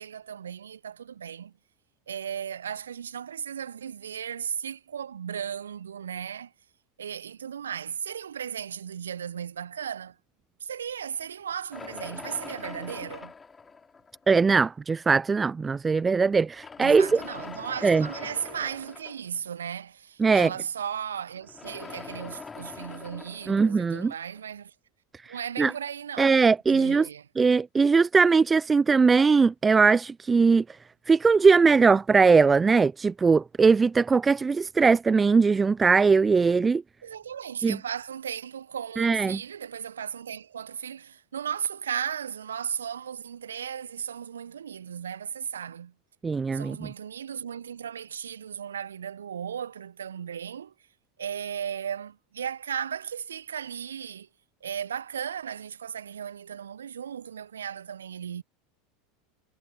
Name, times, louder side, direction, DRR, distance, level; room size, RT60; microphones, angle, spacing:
voice 1, 0.0-1.5 2.1-6.5 7.0-10.2 10.6-13.3 16.8-24.7 25.3-26.4 26.7-27.3 37.0-45.9 46.5-50.7 51.2-54.3 54.6-58.4, right 8 dB, 75° right, 1.1 m, -36 dB
sound 1, 11.7-14.4 15.2-15.3 16.4-19.5 21.3-24.4, left 5 dB, 20° left, 6.2 m, -43 dB
voice 2, 14.3-17.2 17.8-18.1 20.2-20.5 23.5-24.1 25.2-25.7 26.2-27.1 27.4-30.8 31.1-36.8 37.6-37.8 39.0-39.4 46.2-46.9, right 4 dB, 20° right, 0.4 m, -20 dB
figure-of-eight pair, 80°, 0 cm